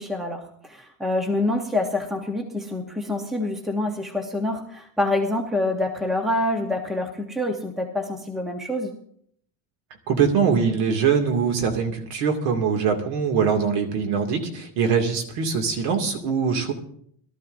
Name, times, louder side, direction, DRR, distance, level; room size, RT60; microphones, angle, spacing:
voice 1, 0.0-8.9, left 2 dB, ahead, 3 dB, 0.8 m, -26 dB
voice 2, 10.1-16.7, right 6 dB, 60° right, 4 dB, 2.3 m, -22 dB
21.0 x 13.0 x 2.6 m, 0.65 s
cardioid pair, 160°, 42 cm